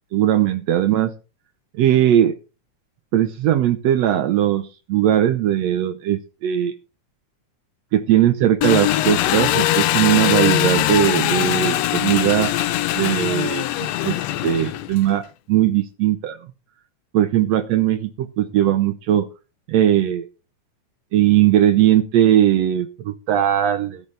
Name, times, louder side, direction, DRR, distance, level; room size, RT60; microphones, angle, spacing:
voice 1, 0.1-1.1 1.7-2.3 3.1-6.7 7.9-12.5 12.9-16.4 17.1-19.3 19.7-20.3 21.1-24.0, right 11 dB, 70° right, 11 dB, 1.8 m, -19 dB
Engine, 8.6-15.1, left 14 dB, 75° left, 1.6 m, -21 dB
14.0 x 12.0 x 3.3 m, 0.31 s
omnidirectional pair, 3.5 m